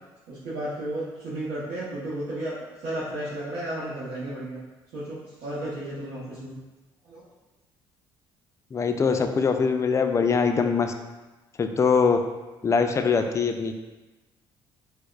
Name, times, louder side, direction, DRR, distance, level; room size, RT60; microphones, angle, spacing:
voice 1, 0.3-4.6 4.9-6.5 7.0-7.2, right 1 dB, 70° right, -9 dB, 0.8 m, -33 dB
voice 2, 8.7-10.9 11.6-12.2 12.6-13.7, left 5 dB, 30° left, 6 dB, 0.3 m, -22 dB
4.4 x 2.1 x 2.3 m, 1.1 s
supercardioid pair, 70°, 11 cm